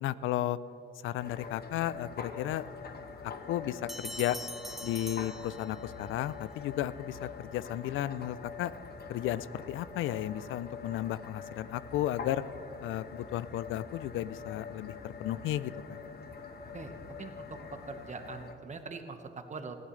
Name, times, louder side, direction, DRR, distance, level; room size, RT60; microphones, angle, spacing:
voice 1, 0.0-0.6 1.0-2.7 3.5-4.4 4.8-8.7 9.1-12.4 12.8-16.0, left 13 dB, 80° left, 17 dB, 0.5 m, -34 dB
sound 1, 1.2-18.5, left 5 dB, 55° left, 1.2 m, -45 dB
Bell, 3.9-6.1, left 1 dB, ahead, 0.8 m, -43 dB
voice 2, 16.7-17.6 17.9-19.8, right 4 dB, 35° right, 6 dB, 1.4 m, -43 dB
20.0 x 15.0 x 3.3 m, 2.8 s
cardioid pair, 90°, 20 cm